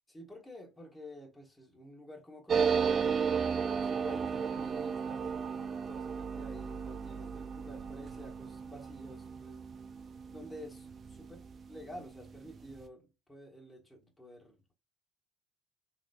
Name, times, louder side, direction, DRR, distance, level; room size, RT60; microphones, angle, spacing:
voice 1, 0.1-3.1 3.7-9.7 10.3-11.4 11.7-14.7, equal, 10° left, 1.4 m, -50 dB
sound 1, 2.5-11.6 11.9-12.0 12.2-12.8, right 6 dB, 45° right, 0.4 m, -34 dB
3.9 x 2.9 x 2.3 m
hypercardioid pair, 65°, 0 cm